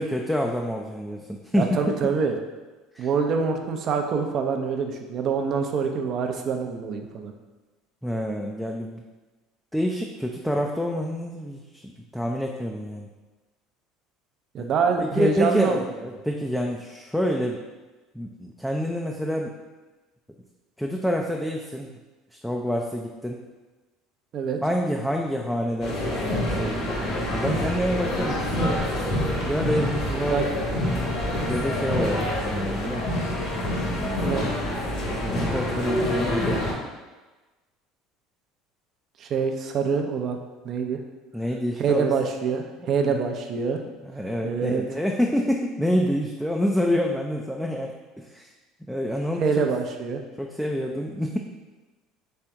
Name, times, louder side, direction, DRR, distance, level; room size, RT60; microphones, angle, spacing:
voice 1, 0.0-1.7 2.9-3.1 8.0-9.0 9.7-13.1 14.6-14.7 15.0-17.6 18.1-19.5 20.8-21.9 22.3-23.4 24.6-28.8 29.4-30.4 31.5-33.1 33.8-34.6 35.0-36.6 41.3-42.1 43.1-43.2 44.1-48.5 48.9-49.6 50.4-51.4, equal, ahead, 0 dB, 0.4 m, -27 dB
voice 2, 1.5-2.3 3.0-7.3 14.5-15.8 24.3-24.6 30.3-30.4 34.2-34.5 39.2-40.4 40.6-41.0 41.8-43.8 44.4-44.8 49.4-50.2, right 5 dB, 50° right, 4 dB, 0.6 m, -25 dB
sound 1, 25.8-36.7, left 1 dB, 60° left, 1.5 m, -27 dB
4.4 x 3.3 x 3.6 m, 1.2 s
hypercardioid pair, 80°, 0 cm